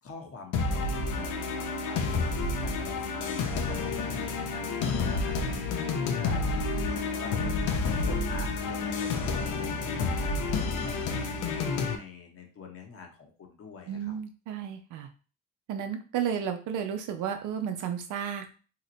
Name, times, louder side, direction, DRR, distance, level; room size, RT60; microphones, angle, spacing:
voice 1, 0.0-14.1, left 5 dB, 50° left, 2 dB, 0.9 m, -46 dB
sound 1, 0.5-12.0, left 3 dB, 85° left, 0.6 m, -29 dB
voice 2, 13.9-15.1 15.7-18.5, right 8 dB, 85° right, 6 dB, 0.6 m, -33 dB
2.9 x 2.1 x 3.8 m, 0.37 s
cardioid pair, 90°, 30 cm